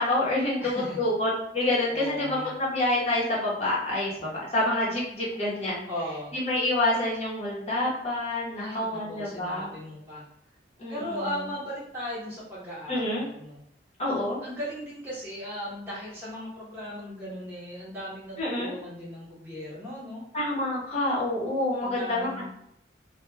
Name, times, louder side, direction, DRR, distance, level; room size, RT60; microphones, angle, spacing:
voice 1, 0.0-0.7 1.0-5.9 6.3-9.7 10.8-11.2 12.9-13.2 14.0-14.4 18.4-18.7 20.3-22.5, left 1 dB, 35° left, -6 dB, 0.8 m, -27 dB
voice 2, 0.6-1.1 1.9-2.5 5.9-6.4 8.5-10.2 10.9-13.6 14.1-20.2 21.8-22.5, equal, 10° right, -9 dB, 0.7 m, -37 dB
2.2 x 2.1 x 3.1 m, 0.76 s
head